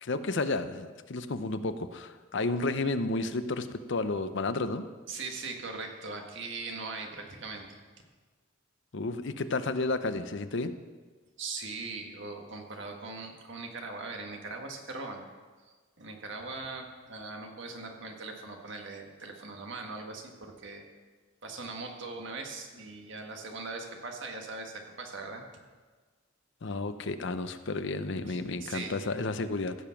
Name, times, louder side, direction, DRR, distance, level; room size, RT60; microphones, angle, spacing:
voice 1, 0.0-4.9 8.9-10.7 26.6-29.7, left 3 dB, 60° left, 10 dB, 0.7 m, -32 dB
voice 2, 5.1-7.8 11.4-15.3 15.6-20.8 21.4-25.4 28.3-29.0, right 3 dB, 65° right, 2 dB, 1.7 m, -40 dB
15.5 x 7.1 x 5.8 m, 1.4 s
head